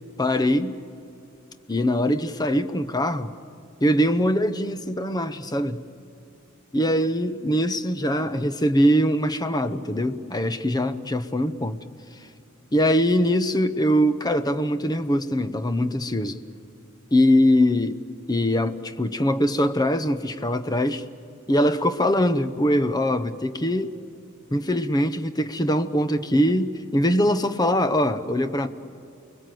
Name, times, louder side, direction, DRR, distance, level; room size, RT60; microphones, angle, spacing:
voice 1, 0.2-0.8 1.7-3.3 3.8-5.8 6.7-11.8 12.7-16.4 17.1-18.0 18.3-21.0 21.5-23.9 24.5-28.7, equal, 20° left, 0.8 m, -22 dB
29.5 x 21.0 x 7.7 m
head